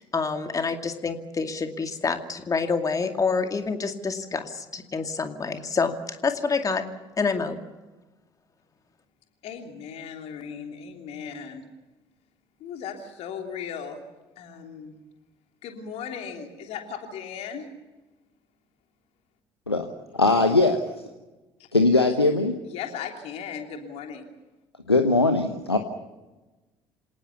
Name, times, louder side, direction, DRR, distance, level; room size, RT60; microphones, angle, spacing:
voice 1, 0.0-6.8 7.2-7.6, left 4 dB, 25° left, 7 dB, 2.4 m, -27 dB
voice 2, 9.4-11.6 12.6-14.0 14.4-15.0 15.6-17.7 21.6-21.7 22.6-24.3, left 7 dB, 55° left, 4 dB, 3.2 m, -37 dB
voice 3, 20.1-20.9 21.7-22.6 24.9-25.8, left 2 dB, 85° left, 7 dB, 1.0 m, -20 dB
27.5 x 18.5 x 7.0 m, 1.1 s
figure-of-eight pair, 55°, 13 cm